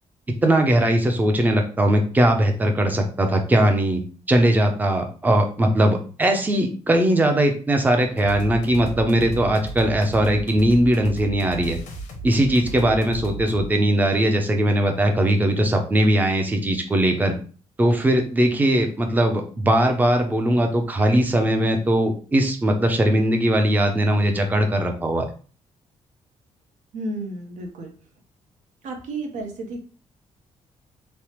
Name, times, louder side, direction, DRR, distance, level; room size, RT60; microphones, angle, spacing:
voice 1, 0.4-4.0 4.3-11.8 12.2-17.3 17.8-25.2, right 1 dB, 15° right, 4 dB, 0.4 m, -20 dB
sound 1, 8.2-13.7, right 3 dB, 85° left, 0.8 m, -34 dB
voice 2, 26.9-27.9 28.8-29.8, right 2 dB, 80° right, 3 dB, 0.7 m, -32 dB
3.2 x 2.0 x 2.9 m, 0.39 s
cardioid pair, 140°, 12 cm